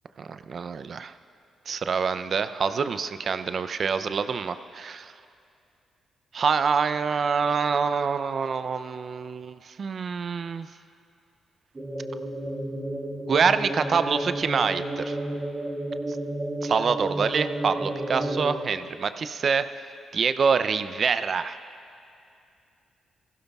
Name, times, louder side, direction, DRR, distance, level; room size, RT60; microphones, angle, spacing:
voice 1, 0.2-1.1 1.7-4.5 4.8-4.9 6.3-10.7 13.3-15.2 16.6-19.7 20.1-21.6, right 5 dB, 55° right, 11 dB, 0.5 m, -26 dB
sound 1, 11.8-18.6, right 1 dB, 35° right, 2.3 m, -31 dB
17.0 x 16.0 x 2.4 m, 2.5 s
supercardioid pair, 60°, 0 cm